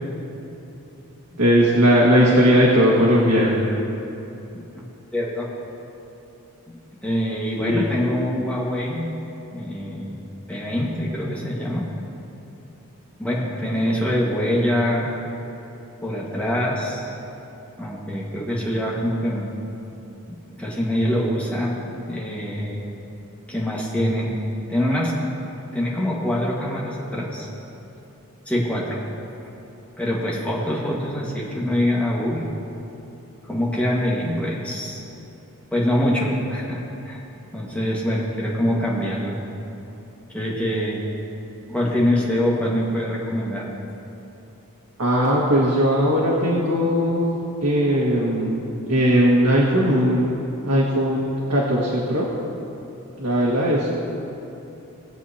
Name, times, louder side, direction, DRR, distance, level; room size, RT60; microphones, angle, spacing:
voice 1, 1.4-3.6 7.6-7.8 45.0-47.2 47.6-48.6 48.9-50.3 50.6-52.3 53.2-53.9, equal, 80° right, -5 dB, 1.7 m, -18 dB
voice 2, 4.5-5.5 7.0-9.1 9.5-10.2 10.5-11.9 13.2-15.1 16.0-17.1 17.8-19.5 20.3-21.7 22.1-22.8 23.5-24.3 24.7-25.1 25.4-27.5 28.4-29.0 30.0-32.5 33.5-35.0 35.7-37.2 37.5-39.4 40.3-41.0 41.7-43.7, equal, 5° left, -5 dB, 1.6 m, -24 dB
21.0 x 7.5 x 2.8 m, 2.9 s
head